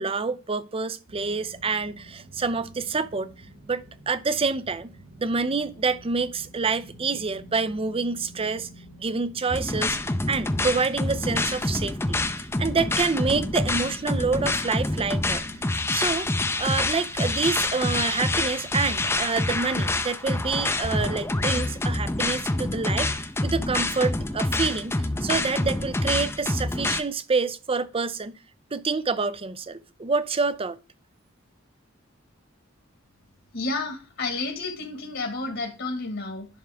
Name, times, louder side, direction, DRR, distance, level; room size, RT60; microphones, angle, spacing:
voice 1, 0.0-3.3 3.7-4.9 5.2-8.7 9.0-10.0 10.3-12.0 12.6-15.4 15.9-16.3 16.6-23.1 23.4-28.4 28.7-30.8, right 4 dB, 30° right, 0.6 m, -27 dB
sound 1, 1.1-19.9, right 1 dB, 60° right, 2.4 m, -49 dB
sound 2, 9.5-27.0, left 2 dB, 10° left, 0.6 m, -27 dB
voice 2, 33.5-36.5, left 3 dB, 65° left, 1.7 m, -31 dB
11.0 x 5.8 x 3.5 m
head